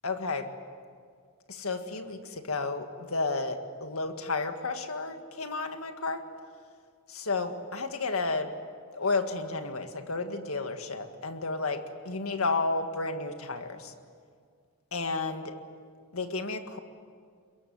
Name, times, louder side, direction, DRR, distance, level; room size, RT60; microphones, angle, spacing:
voice 1, 0.0-0.5 1.5-6.2 7.1-8.5 8.9-13.9 14.9-15.5 16.1-16.8, left 3 dB, 80° left, 7 dB, 1.9 m, -32 dB
23.0 x 22.5 x 9.5 m, 2.1 s
head